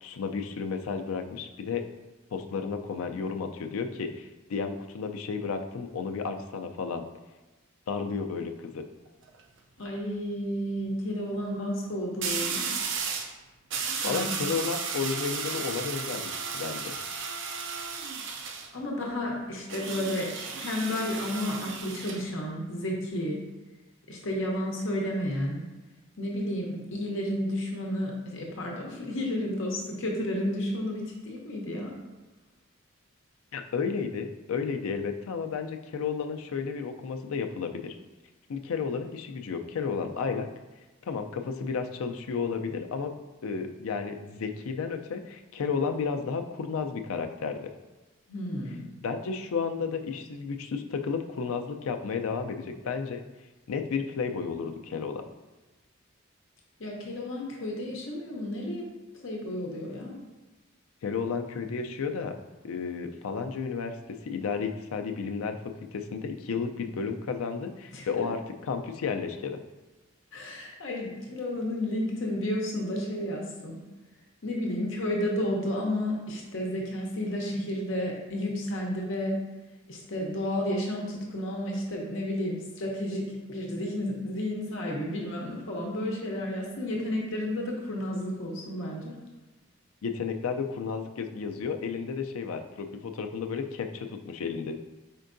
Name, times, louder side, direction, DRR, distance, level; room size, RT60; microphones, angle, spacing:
voice 1, 0.0-1.9 2.3-7.0 7.9-8.8 14.0-16.9 33.5-38.0 38.5-40.5 41.1-47.7 49.0-53.2 53.7-55.2 61.0-62.3 62.6-64.0 64.2-69.6 90.0-94.8, left 5 dB, 90° left, 6 dB, 0.4 m, -32 dB
sound 1, 9.1-9.4 12.2-13.3 13.7-18.7 19.7-22.2, right 5 dB, 60° right, 0.4 m, -34 dB
voice 2, 9.8-12.7 14.0-14.4 18.7-23.5 24.1-25.7 26.2-31.9 48.3-48.8 56.8-58.8 59.2-60.2 67.9-68.1 70.3-73.8 74.4-79.4 79.9-89.2, left 1 dB, 65° left, -1 dB, 0.8 m, -32 dB
4.4 x 4.4 x 2.6 m, 1.2 s
head